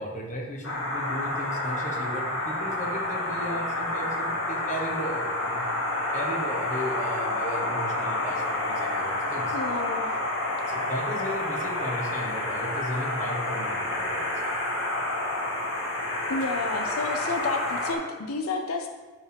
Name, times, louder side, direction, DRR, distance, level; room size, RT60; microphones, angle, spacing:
voice 1, 0.0-9.6 10.7-14.5, equal, 35° left, 0 dB, 1.1 m, -35 dB
sound 1, 0.6-17.9, left 1 dB, 70° left, 1.7 m, -29 dB
voice 2, 9.5-10.1 16.3-18.9, left 3 dB, 85° left, 5 dB, 0.6 m, -30 dB
9.8 x 4.8 x 3.4 m, 1.4 s
head